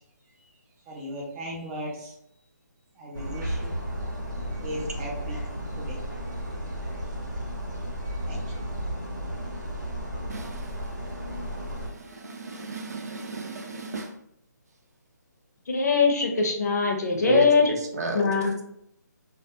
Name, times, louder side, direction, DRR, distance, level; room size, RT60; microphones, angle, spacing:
voice 1, 0.9-2.1 3.0-3.7 4.6-5.4 5.8-6.0 8.3-8.6, equal, 15° right, -3 dB, 0.5 m, -37 dB
sound 1, 3.1-11.9, equal, 85° right, 0.9 m, -33 dB
voice 2, 10.1-10.9 11.3-14.1 17.3-18.5, right 2 dB, 60° right, 2 dB, 0.5 m, -33 dB
voice 3, 15.7-17.7 18.1-18.5, left 4 dB, 65° left, 2 dB, 0.7 m, -22 dB
2.2 x 2.2 x 2.7 m, 0.74 s
hypercardioid pair, 155°, 10 cm